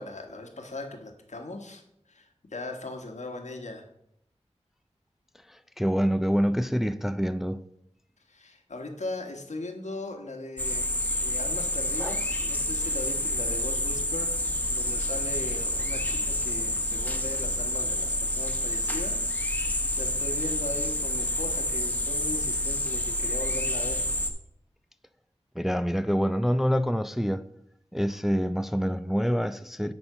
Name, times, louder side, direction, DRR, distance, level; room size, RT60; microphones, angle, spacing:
voice 1, 0.0-1.8 2.1-3.9 8.3-10.9 11.2-14.4 14.7-24.1, left 2 dB, 80° left, 1.3 m, -39 dB
voice 2, 5.5-7.6 12.0-12.2 25.6-27.4 27.9-29.9, equal, ahead, 0.4 m, -26 dB
sound 1, 10.6-24.3, left 1 dB, 15° left, 1.0 m, -28 dB
9.7 x 4.3 x 5.5 m
wide cardioid pair, 70°, 12 cm